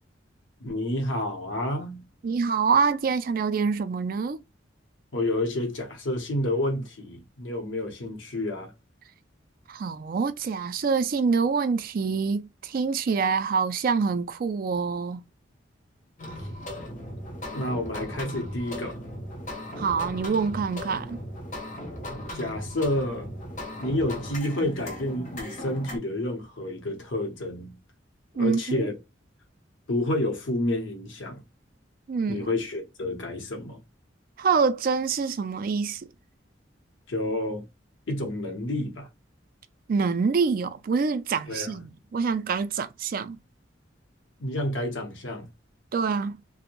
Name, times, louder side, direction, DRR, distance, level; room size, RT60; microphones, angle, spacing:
voice 1, 0.6-2.0 5.1-8.7 16.4-16.5 17.5-19.0 22.3-23.3 23.8-27.8 28.4-29.0 29.9-31.4 32.3-33.8 37.1-37.7 38.1-39.1 41.5-41.8 44.4-45.5, left 1 dB, 80° left, 0.8 m, -29 dB
voice 2, 2.2-4.4 9.7-15.2 19.8-21.2 28.4-28.9 32.1-32.5 34.4-36.0 39.9-43.4 45.9-46.3, right 5 dB, 50° right, 0.3 m, -26 dB
sound 1, 16.2-26.0, left 1 dB, 40° left, 0.7 m, -37 dB
2.5 x 2.0 x 2.9 m
head